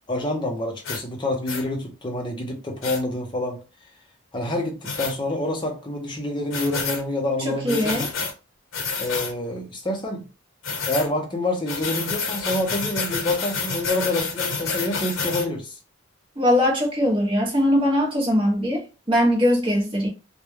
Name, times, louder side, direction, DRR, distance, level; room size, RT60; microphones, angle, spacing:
voice 1, 0.1-3.6 4.3-8.1 9.0-10.2 10.9-15.8, left 1 dB, 25° left, 0.6 m, -27 dB
sound 1, 0.8-1.0 1.5-1.6 2.8-3.0 4.8-5.1 6.5-7.0 7.7-8.3 8.7-9.3 10.6-11.1 11.7-15.5, left 4 dB, 80° left, 0.8 m, -28 dB
voice 2, 7.4-8.1 16.4-20.1, equal, 25° right, 0.7 m, -21 dB
2.3 x 2.1 x 3.1 m
head